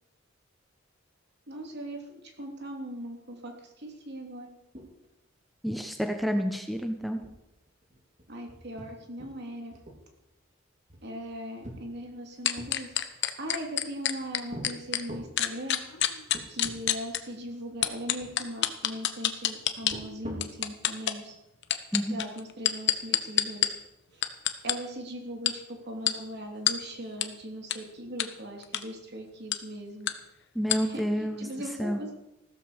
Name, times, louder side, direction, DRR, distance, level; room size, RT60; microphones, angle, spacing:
voice 1, 1.5-4.5 8.3-9.7 11.0-12.9 13.4-15.8 16.5-21.4 22.1-23.7 24.1-24.2 24.6-25.6 25.8-30.1 30.8-32.1, equal, 60° right, 2 dB, 3.2 m, -39 dB
sound 1, 4.7-5.2 5.5-5.6 6.0-6.2 6.7-6.8 7.2-9.4 9.7-10.4 10.9-12.7 13.4-14.1 14.5-14.7 15.1-15.4 15.9-16.0 16.3-16.8 17.1-17.2 17.8-18.4 19.7-20.6, equal, 35° right, 3.4 m, -44 dB
voice 2, 5.6-7.2 21.9-22.2 30.5-31.5 31.8-32.0, equal, ahead, 5 dB, 1.0 m, -29 dB
sound 2, 12.5-15.0 15.4-17.2 17.8-19.9 20.4-21.1 21.6-23.7 24.2-24.7 25.5-25.6 26.1-26.2 26.7-26.8 27.2-27.3 27.7-27.8 28.2-28.3 28.6-28.8 29.5-29.6 30.1-30.2 30.7-30.8, left 11 dB, 60° left, 1.1 m, -26 dB
15.5 x 13.5 x 5.2 m, 0.87 s
head